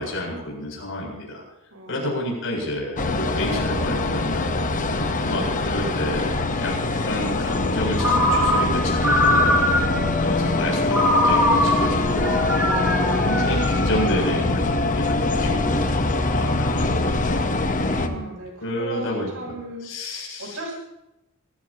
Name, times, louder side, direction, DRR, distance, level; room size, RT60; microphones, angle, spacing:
voice 1, 0.0-1.4 1.9-4.6 5.3-6.7 7.0-9.7 10.2-12.3 12.9-15.8 16.3-18.4 18.6-19.5 19.8-20.6, left 1 dB, 65° left, -2 dB, 8.0 m, -30 dB
voice 2, 1.7-2.2 5.0-5.8 12.6-13.0 16.0-16.5 17.8-20.7, right 1 dB, 70° right, 0 dB, 8.0 m, -38 dB
sound 1, 3.0-18.1, left 2 dB, 35° left, 1.2 m, -23 dB
Ringtone, 8.0-10.1 10.9-14.2, left 1 dB, 5° right, 5.7 m, -22 dB
26.0 x 15.5 x 3.0 m, 0.92 s
head